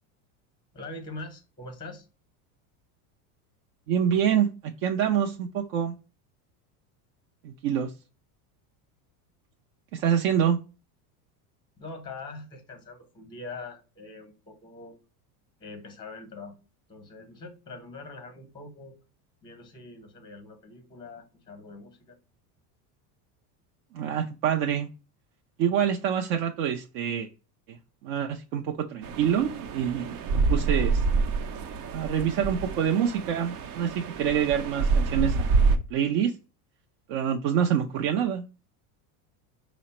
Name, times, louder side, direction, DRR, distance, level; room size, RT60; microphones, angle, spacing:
voice 1, 0.7-2.1 11.8-15.0 15.6-16.5 16.9-18.9 19.4-22.2, left 3 dB, 10° left, 0.7 m, -43 dB
voice 2, 3.9-5.9 7.4-7.9 9.9-10.6 23.9-24.9 25.6-27.3 27.7-31.0 31.9-36.3 37.1-38.4, right 8 dB, 55° right, 0.5 m, -26 dB
sound 1, 29.0-35.8, right 4 dB, 80° right, 0.8 m, -27 dB
4.8 x 2.0 x 4.2 m
cardioid pair, 155°, 45 cm